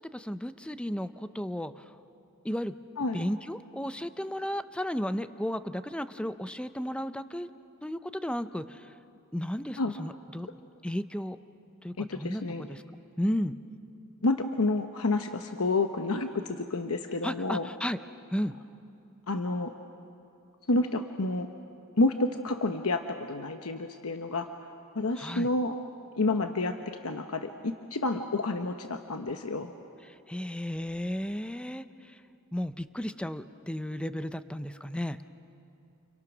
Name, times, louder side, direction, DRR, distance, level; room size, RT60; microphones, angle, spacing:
voice 1, 0.1-1.9 2.4-2.8 3.1-7.5 7.8-8.9 9.3-10.5 10.8-11.4 11.8-12.8 13.2-13.6 17.2-18.0 18.3-18.5 25.2-25.5 30.1-32.2 32.5-35.2, equal, 5° left, 11 dB, 0.6 m, -34 dB
voice 2, 12.0-12.7 14.2-17.7 19.3-19.7 20.7-21.5 22.0-24.5 24.9-25.8 26.2-26.8 27.0-29.7, left 2 dB, 75° left, 6 dB, 1.0 m, -29 dB
29.5 x 29.0 x 6.1 m, 2.7 s
head